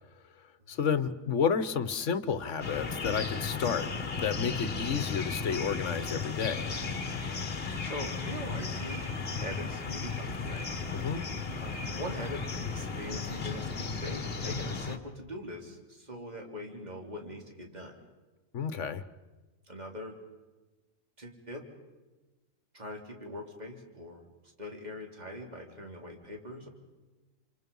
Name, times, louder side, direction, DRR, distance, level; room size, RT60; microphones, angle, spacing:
voice 1, 0.7-3.9 4.2-6.7 10.9-11.2 18.5-19.0, left 6 dB, 65° left, 13 dB, 1.4 m, -31 dB
sound 1, 2.6-15.0, left 4 dB, 45° left, 1.6 m, -35 dB
voice 2, 7.8-9.1 9.4-10.7 11.6-12.4 12.7-17.9 19.7-20.2 21.2-21.7 22.7-24.2 24.6-26.7, left 1 dB, 30° right, 1 dB, 3.5 m, -42 dB
29.0 x 27.5 x 5.5 m, 1.2 s
omnidirectional pair, 1.4 m